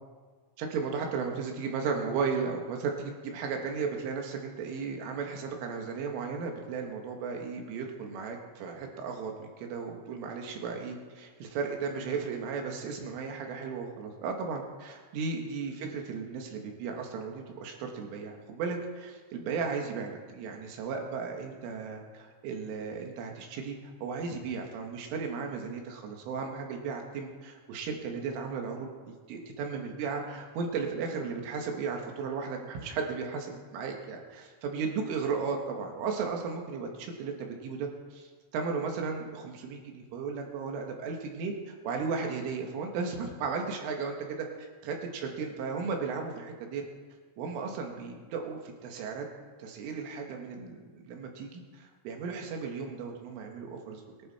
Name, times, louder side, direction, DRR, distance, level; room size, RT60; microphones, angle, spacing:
voice 1, 0.6-44.1 44.9-46.8 47.4-49.3 49.6-54.0, right 5 dB, 75° right, 2 dB, 4.1 m, -35 dB
23.0 x 11.0 x 4.4 m, 1.5 s
omnidirectional pair, 6.0 m